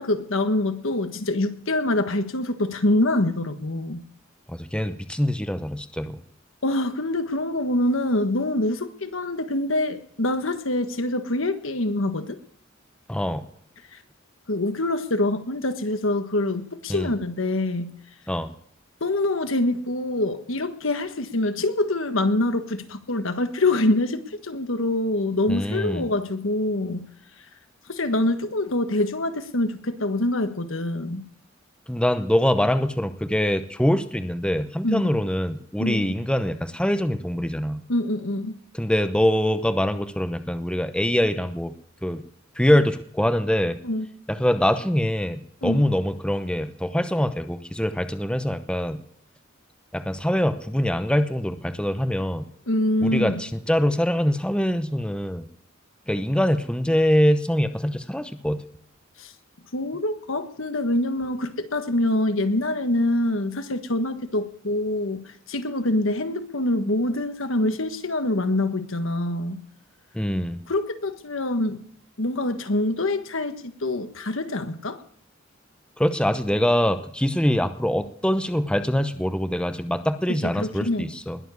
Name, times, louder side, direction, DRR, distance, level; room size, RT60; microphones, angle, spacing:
voice 1, 0.0-4.0 6.6-12.4 13.9-14.0 14.5-17.9 19.0-27.0 27.9-31.2 34.8-35.1 35.8-36.2 37.9-38.6 43.8-44.1 45.6-45.9 52.7-53.4 59.2-59.3 59.7-69.6 70.7-71.8 72.2-75.0 80.3-81.1, left 1 dB, 75° left, 9 dB, 1.5 m, -25 dB
voice 2, 4.5-6.2 13.1-13.4 16.9-17.1 18.3-18.5 25.5-26.0 31.9-37.8 38.7-41.7 42.0-42.2 42.6-43.8 44.4-49.0 49.9-52.4 53.0-55.5 56.1-58.6 70.1-70.6 76.0-81.4, equal, 5° left, 9 dB, 0.8 m, -24 dB
20.5 x 7.3 x 9.6 m, 0.67 s
head